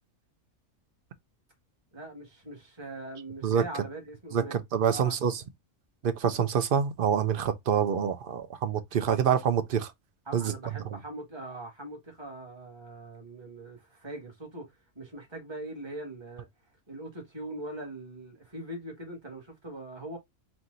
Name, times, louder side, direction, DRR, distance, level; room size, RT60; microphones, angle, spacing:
voice 1, 1.9-4.6 4.9-5.2 10.3-16.5 16.9-20.2, right 1 dB, 20° right, 1.8 m, -41 dB
voice 2, 4.3-5.4 6.0-9.9 10.3-10.5, right 8 dB, 50° right, 0.8 m, -26 dB
4.5 x 2.5 x 3.8 m
omnidirectional pair, 1.3 m